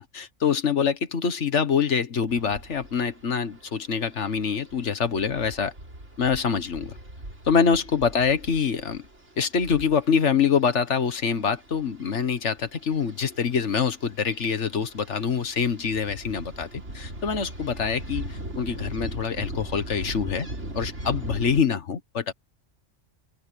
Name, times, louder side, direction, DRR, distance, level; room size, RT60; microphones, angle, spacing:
voice 1, 0.0-5.7 6.2-6.9 7.5-9.0 9.4-16.7 16.9-20.5 20.7-22.3, left 6 dB, 65° left, 1.7 m, -25 dB
sound 1, 2.3-21.6, right 1 dB, 65° right, 5.4 m, -40 dB
open air
omnidirectional pair, 1.3 m